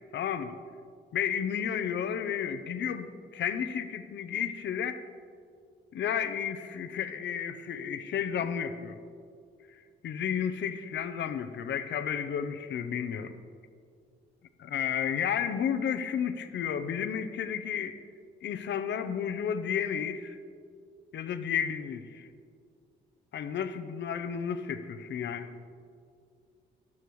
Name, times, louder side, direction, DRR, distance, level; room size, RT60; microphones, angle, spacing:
voice 1, 0.1-0.6 1.1-5.0 5.9-9.0 10.0-13.3 14.6-18.0 18.4-20.4 21.1-22.3 23.3-25.5, left 8 dB, 65° left, 9 dB, 0.8 m, -32 dB
13.0 x 12.0 x 3.2 m, 2.2 s
cardioid pair, 90°, 20 cm